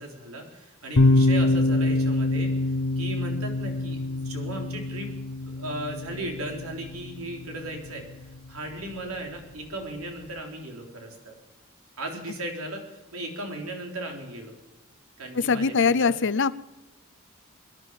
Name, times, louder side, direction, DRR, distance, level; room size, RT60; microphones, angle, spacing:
voice 1, 0.0-5.2 5.5-8.1 8.5-11.4 12.0-14.6 15.2-16.1, right 1 dB, 90° right, 2 dB, 3.6 m, -36 dB
sound 1, 0.9-10.4, left 2 dB, 85° left, 1.0 m, -26 dB
voice 2, 15.3-16.5, left 5 dB, 60° left, 16 dB, 0.6 m, -22 dB
24.5 x 11.0 x 5.3 m, 1.0 s
head